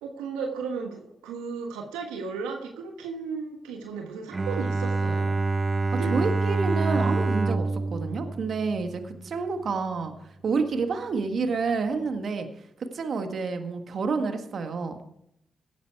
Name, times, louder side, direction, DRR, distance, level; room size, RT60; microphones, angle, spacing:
voice 1, 0.0-5.3 6.0-6.2, right 5 dB, 90° right, 3 dB, 1.3 m, -34 dB
Bowed string instrument, 4.3-9.3, right 3 dB, 40° right, 0.7 m, -27 dB
voice 2, 6.1-10.1 10.4-12.5 12.9-15.0, right 4 dB, 65° right, 7 dB, 1.6 m, -29 dB
16.5 x 9.2 x 4.7 m, 0.76 s
hypercardioid pair, 40°, 0 cm